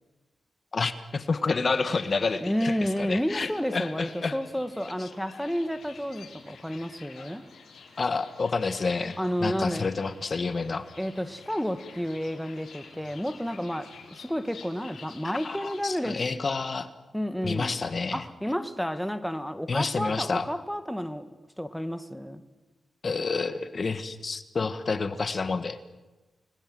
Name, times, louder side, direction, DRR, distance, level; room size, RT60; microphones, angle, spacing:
voice 1, 0.7-4.4 8.0-10.9 15.4-16.9 17.4-18.2 19.7-20.4 23.0-25.8, left 4 dB, 45° left, 1.5 m, -29 dB
sound 1, 1.6-16.2, left 5 dB, 80° left, 5.3 m, -50 dB
voice 2, 2.4-7.4 9.2-9.8 11.0-16.2 17.1-17.8 18.1-21.3 21.6-22.4, equal, ahead, 1.6 m, -31 dB
30.0 x 20.0 x 7.7 m
cardioid pair, 85°, 0 cm